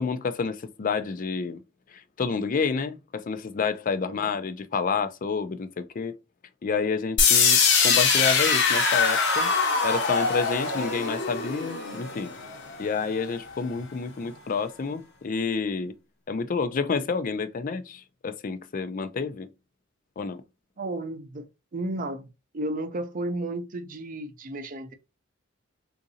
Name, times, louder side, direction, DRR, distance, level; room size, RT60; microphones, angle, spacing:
voice 1, 0.0-1.6 2.2-6.2 6.6-9.5 9.8-12.3 12.8-15.9 16.3-19.5 20.2-20.4, left 5 dB, 40° left, 0.4 m, -29 dB
sound 1, 7.2-13.1, left 5 dB, 60° left, 0.9 m, -23 dB
voice 2, 20.8-21.5 21.7-22.3 22.5-24.9, right 1 dB, 40° right, 0.5 m, -33 dB
3.8 x 2.5 x 2.6 m
head